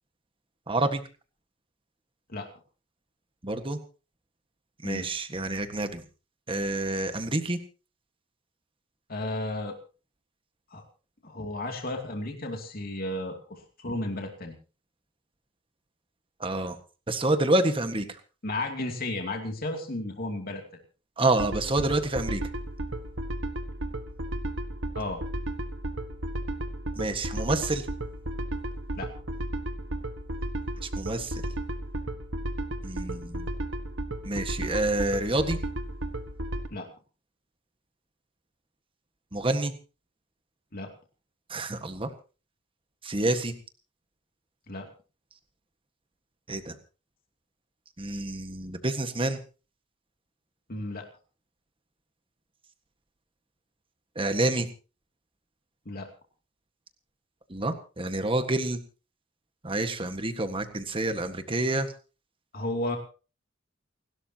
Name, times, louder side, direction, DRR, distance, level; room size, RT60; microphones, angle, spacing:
voice 1, 0.7-1.0 3.4-3.8 4.8-6.0 6.5-7.6 16.4-16.8 17.1-18.1 21.2-22.4 27.0-27.9 30.8-31.4 32.8-33.5 34.2-35.6 39.3-39.7 41.5-42.1 43.0-43.5 46.5-46.7 48.0-49.4 54.1-54.7 57.5-58.8 59.6-61.9, right 2 dB, 25° right, 8 dB, 1.7 m, -28 dB
voice 2, 9.1-9.7 10.7-10.8 11.2-14.5 18.4-20.6 24.9-25.2 29.0-29.1 36.7-36.9 40.7-40.9 44.7-44.9 50.7-51.0 55.8-56.1 62.5-63.0, left 1 dB, 50° left, 3 dB, 2.8 m, -33 dB
sound 1, 21.4-36.7, right 1 dB, 65° right, 1.6 m, -34 dB
29.0 x 12.5 x 3.0 m, 0.35 s
head